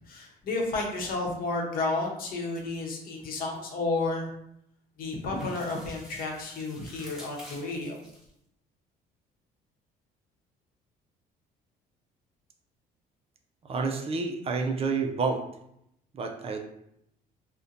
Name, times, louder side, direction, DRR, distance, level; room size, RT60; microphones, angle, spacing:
voice 1, 0.1-4.3 5.0-8.0, left 3 dB, 60° left, 0 dB, 0.8 m, -31 dB
sound 1, 2.5-3.6 5.1-8.3, equal, ahead, 1.1 m, -50 dB
voice 2, 13.6-15.4 16.1-16.6, right 4 dB, 35° right, 3 dB, 0.4 m, -29 dB
2.6 x 2.1 x 3.8 m, 0.76 s
cardioid pair, 110°, 17 cm